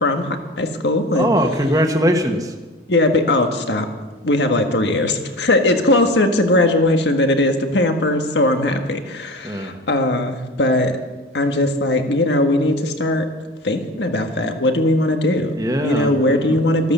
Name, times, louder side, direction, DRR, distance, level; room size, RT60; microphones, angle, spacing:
voice 1, 0.0-1.3 2.9-3.9 4.2-10.9 11.3-13.3 13.6-16.9, left 1 dB, 80° left, 5 dB, 1.6 m, -19 dB
voice 2, 1.1-2.5 9.4-9.8 15.6-16.6, equal, 20° right, 3 dB, 1.2 m, -20 dB
13.5 x 13.5 x 6.8 m, 1.2 s
head